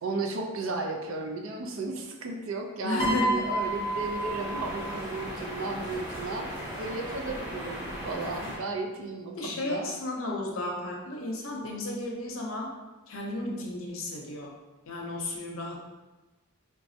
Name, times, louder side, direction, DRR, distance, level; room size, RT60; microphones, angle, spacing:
voice 1, 0.0-9.9, right 3 dB, 70° right, 3 dB, 0.4 m, -34 dB
voice 2, 2.8-3.5 9.4-12.7 13.1-14.5 14.9-15.8, left 1 dB, 75° left, -1 dB, 0.6 m, -33 dB
Piano, 3.0-5.4 6.4-6.7, right 1 dB, 30° left, 0.7 m, -31 dB
sound 1, 3.3-8.6, equal, 10° right, 1.4 m, -38 dB
4.0 x 2.2 x 2.7 m, 1.1 s
head